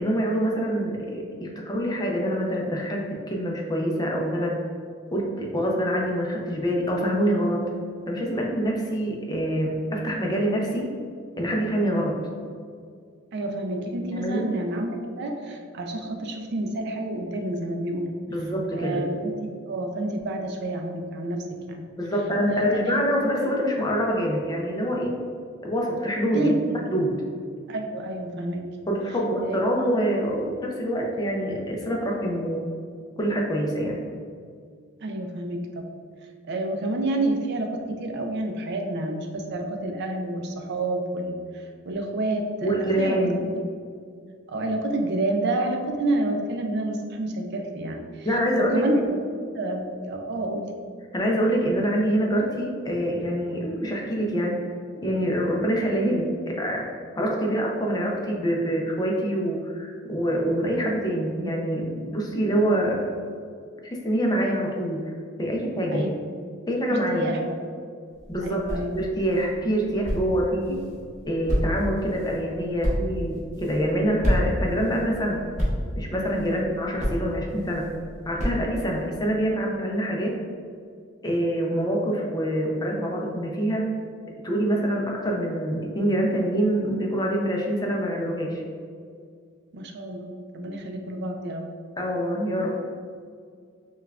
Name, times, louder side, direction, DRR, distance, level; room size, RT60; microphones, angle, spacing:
voice 1, 0.0-4.6 5.1-7.6 8.1-10.9 11.4-12.2 14.1-14.5 18.3-19.0 22.0-25.1 25.6-26.5 26.9-27.2 28.9-32.6 33.2-34.0 42.6-43.4 48.2-48.8 51.1-54.6 55.0-56.9 57.2-63.1 63.8-65.1 65.4-66.1 66.7-67.3 68.3-68.7 68.9-70.8 71.3-75.4 75.9-77.9 78.2-80.4 81.2-83.9 84.4-88.6 92.0-92.8, equal, 20° left, -1 dB, 0.5 m, -25 dB
voice 2, 13.3-18.1 18.7-21.8 22.5-23.0 26.3-26.8 27.7-28.7 29.4-29.8 35.0-35.9 36.4-43.2 44.5-48.3 48.5-49.2 49.5-50.7 57.2-57.4 65.9-66.1 66.9-67.6 68.4-69.0 70.5-70.6 76.3-76.8 89.7-91.7, right 1 dB, 55° right, 3 dB, 0.4 m, -29 dB
sound 1, 68.1-79.0, equal, 35° right, 1.0 m, -31 dB
5.4 x 2.3 x 2.3 m, 2.1 s
head